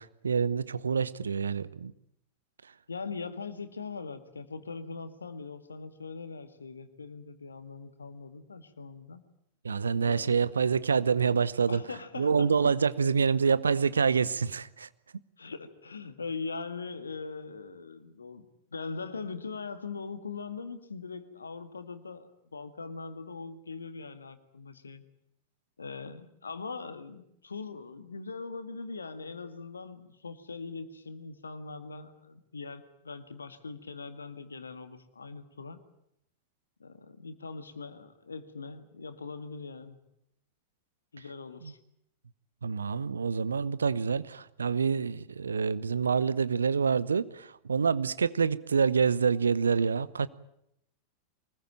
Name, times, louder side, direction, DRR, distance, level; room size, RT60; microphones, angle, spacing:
voice 1, 0.0-1.9 9.6-11.8 12.2-14.9 41.6-41.7 42.6-50.3, right 6 dB, 75° right, 0.9 m, -27 dB
voice 2, 2.9-9.2 10.0-10.5 11.7-12.5 15.4-25.0 25.8-35.8 36.8-40.0 41.1-41.8, left 4 dB, 75° left, 2.0 m, -41 dB
24.0 x 20.5 x 9.0 m
figure-of-eight pair, 90°, 0 cm